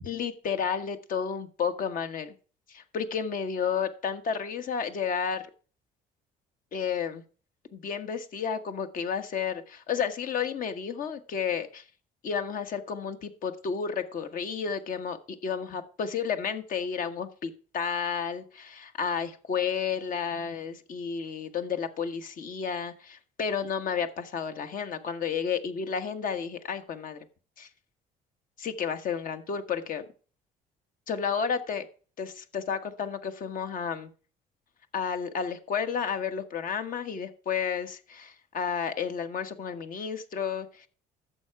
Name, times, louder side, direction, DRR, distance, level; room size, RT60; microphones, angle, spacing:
voice 1, 0.0-2.3 2.7-5.4 6.7-7.2 7.7-11.8 12.2-27.2 27.6-27.7 28.6-30.0 31.1-31.9 32.2-34.1 34.9-40.9, left 6 dB, 55° left, 8 dB, 1.4 m, -31 dB
11.5 x 7.7 x 4.7 m, 0.40 s
cardioid pair, 110°, 17 cm